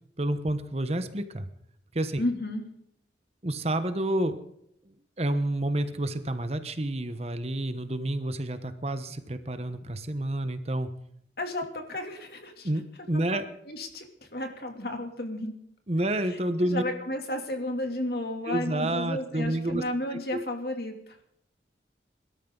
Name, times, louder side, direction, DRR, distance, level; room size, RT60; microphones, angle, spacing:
voice 1, 0.2-1.5 1.9-2.2 3.4-4.4 4.8-10.9 12.6-13.4 15.9-16.8 18.5-19.8 20.1-20.4, right 1 dB, 35° right, 10 dB, 1.1 m, -29 dB
voice 2, 2.2-2.6 11.4-12.7 13.3-13.4 13.7-15.6 16.3-21.2, left 1 dB, 60° left, 4 dB, 2.9 m, -33 dB
24.0 x 13.0 x 4.0 m, 0.71 s
head